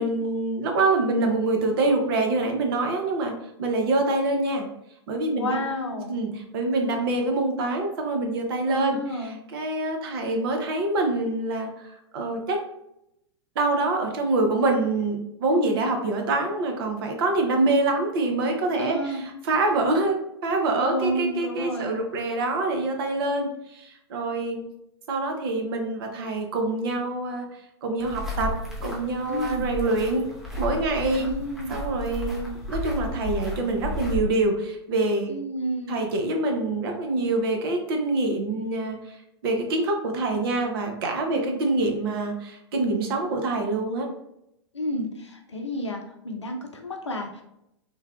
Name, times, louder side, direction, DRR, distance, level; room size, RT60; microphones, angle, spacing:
voice 1, 0.0-3.3 3.6-4.7 5.1-5.6 6.1-12.6 13.6-24.6 25.1-27.5 27.8-28.5 28.8-30.3 30.6-31.3 31.7-35.3 35.9-39.2 39.4-44.1, right 2 dB, 55° right, 3 dB, 0.7 m, -25 dB
voice 2, 5.4-6.4 6.7-7.1 8.7-9.4 15.5-15.8 18.8-19.2 20.8-21.9 29.3-29.7 31.2-31.8 35.3-36.0 41.3-41.6 44.7-47.4, equal, 90° left, 3 dB, 0.5 m, -30 dB
sound 1, 28.0-34.2, left 1 dB, ahead, 0.6 m, -33 dB
3.2 x 2.2 x 2.3 m, 0.81 s
figure-of-eight pair, 105°, 15 cm